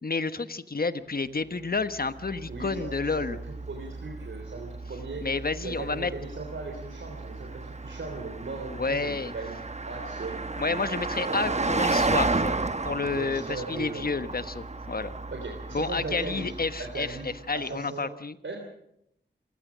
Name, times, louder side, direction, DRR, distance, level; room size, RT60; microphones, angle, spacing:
voice 1, 0.0-3.4 5.2-6.1 8.8-9.3 10.6-12.5 12.8-15.1 15.7-18.4, left 4 dB, 50° left, 12 dB, 1.2 m, -30 dB
Car passing by, 1.8-17.5, right 3 dB, 35° right, 1.1 m, -33 dB
voice 2, 2.5-3.4 3.7-9.5 9.9-10.8 11.2-12.1 13.1-14.1 15.3-16.5 16.8-17.3 17.5-18.1 18.4-18.6, right 3 dB, 85° right, 2 dB, 3.3 m, -38 dB
27.0 x 16.0 x 6.3 m, 0.77 s
wide cardioid pair, 60°, 19 cm